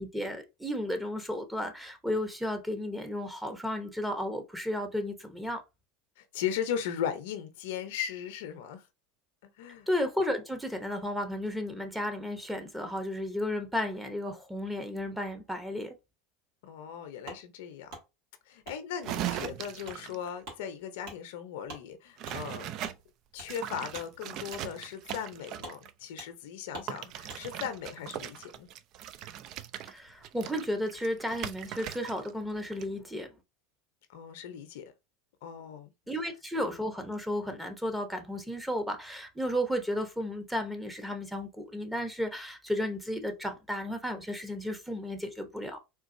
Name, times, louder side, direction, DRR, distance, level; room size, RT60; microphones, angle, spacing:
voice 1, 0.0-5.6 9.9-15.9 29.9-33.3 36.1-45.8, left 1 dB, 5° right, 0.8 m, -33 dB
voice 2, 6.2-8.8 9.4-9.9 16.6-17.9 18.5-22.8 23.3-28.7 34.1-34.9 35.4-35.9, left 8 dB, 75° left, 0.6 m, -37 dB
Wood, 17.3-17.4 17.9-18.0 18.6-18.8 19.2-19.4 19.8-20.0 20.4-20.6 21.0-21.2 21.7-21.8 22.3-22.4 22.8-23.0 23.4-23.5 23.9-24.1 24.5-24.6 25.1-25.2 25.6-25.8 26.2-26.3 26.7-26.9 27.3-27.4, right 2 dB, 70° right, 1.9 m, -44 dB
sound 1, 19.0-20.3 22.2-23.0 23.4-25.9 26.9-32.3 32.6-32.8, right 11 dB, 55° right, 0.3 m, -39 dB
3.8 x 2.4 x 2.6 m
hypercardioid pair, 95°, 0 cm